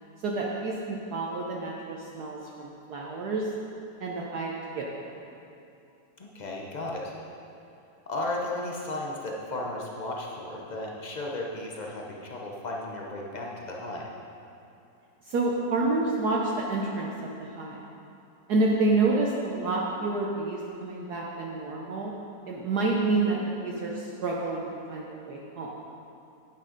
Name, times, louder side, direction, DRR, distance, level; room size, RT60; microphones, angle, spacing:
voice 1, 0.2-3.5 4.0-5.1 15.2-17.8 18.5-22.1 22.5-25.7, right 3 dB, 60° right, -2 dB, 1.2 m, -29 dB
voice 2, 6.2-7.1 8.1-14.1, left 2 dB, 85° left, -2 dB, 0.4 m, -34 dB
8.8 x 8.5 x 5.1 m, 2.7 s
omnidirectional pair, 2.1 m